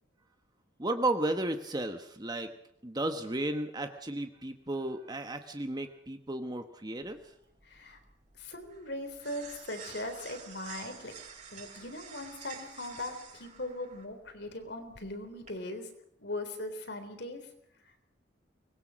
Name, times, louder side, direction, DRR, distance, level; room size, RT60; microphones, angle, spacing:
voice 1, 0.8-2.5 2.8-7.2, right 1 dB, 20° right, 7 dB, 1.1 m, -33 dB
sound 1, 7.0-15.5, right 6 dB, 35° right, 6.3 m, -50 dB
voice 2, 7.6-8.0 8.4-11.1 11.5-15.9 16.2-17.4 17.8-17.9, left 1 dB, 60° left, 7 dB, 3.6 m, -40 dB
23.5 x 20.5 x 6.3 m, 0.72 s
head